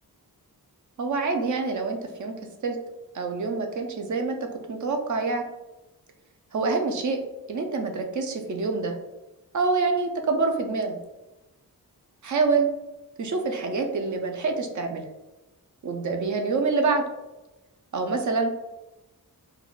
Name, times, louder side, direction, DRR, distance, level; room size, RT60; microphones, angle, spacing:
voice 1, 1.0-2.3 2.6-2.8 3.1-4.4 4.7-5.4 6.5-7.2 7.5-8.9 9.5-11.0 12.2-12.7 13.2-15.1 15.8-17.0 17.9-18.5, right 4 dB, 50° right, 4 dB, 0.4 m, -26 dB
3.5 x 2.2 x 2.3 m, 1.0 s
wide cardioid pair, 155°, 39 cm